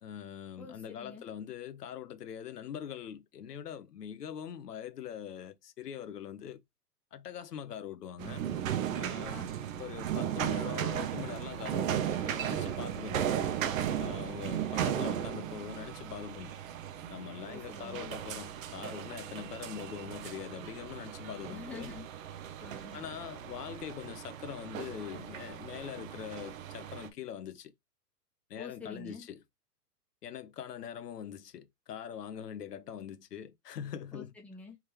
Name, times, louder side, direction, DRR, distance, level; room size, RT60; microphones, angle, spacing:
voice 1, 0.0-6.6 7.1-8.4 8.9-9.4 9.8-13.3 14.0-16.6 17.1-21.9 22.9-27.7 28.5-29.4 30.2-34.3, left 9 dB, 75° left, 0.9 m, -43 dB
voice 2, 0.6-1.2 9.3-10.2 17.5-18.1 21.5-22.1 22.6-23.0 28.6-29.3 34.1-34.8, left 4 dB, 5° left, 0.9 m, -48 dB
sound 1, 8.2-27.1, right 10 dB, 55° right, 0.8 m, -36 dB
3.5 x 3.3 x 3.1 m
hypercardioid pair, 115°, 47 cm